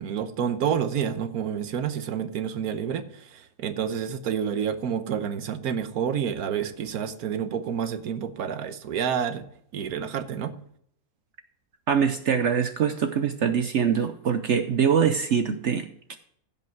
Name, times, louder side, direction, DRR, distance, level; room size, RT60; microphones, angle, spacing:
voice 1, 0.0-9.5 9.7-10.5, right 8 dB, 80° right, 10 dB, 1.4 m, -29 dB
voice 2, 11.9-16.2, right 7 dB, 60° right, 9 dB, 0.9 m, -24 dB
16.0 x 5.5 x 4.6 m, 0.66 s
omnidirectional pair, 1.6 m